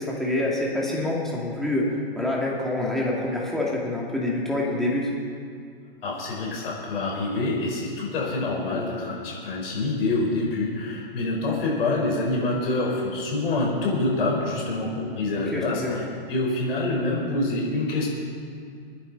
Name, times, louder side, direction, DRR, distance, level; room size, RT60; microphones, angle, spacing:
voice 1, 0.0-5.1 15.5-16.0, left 1 dB, ahead, -4 dB, 2.4 m, -26 dB
voice 2, 6.0-18.1, left 2 dB, 65° left, -2 dB, 4.5 m, -26 dB
23.5 x 9.7 x 4.1 m, 2.3 s
hypercardioid pair, 130°, 31 cm